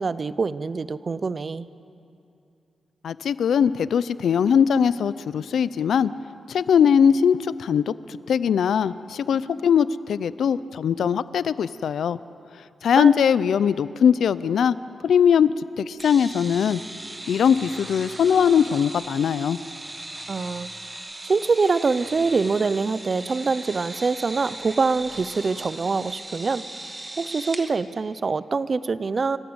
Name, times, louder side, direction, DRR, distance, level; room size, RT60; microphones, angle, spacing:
voice 1, 0.0-1.7 13.0-13.1 20.3-20.7 21.2-26.6 27.2-29.4, right 4 dB, 35° right, 16 dB, 0.6 m, -24 dB
voice 2, 3.0-6.1 6.5-12.2 12.8-14.7 15.0-15.5 15.8-16.8 17.3-19.6, left 7 dB, 75° left, 16 dB, 0.5 m, -20 dB
sound 1, 16.0-27.7, right 2 dB, 15° right, 1.2 m, -38 dB
29.5 x 15.5 x 8.0 m, 2.6 s
wide cardioid pair, 165°, 0 cm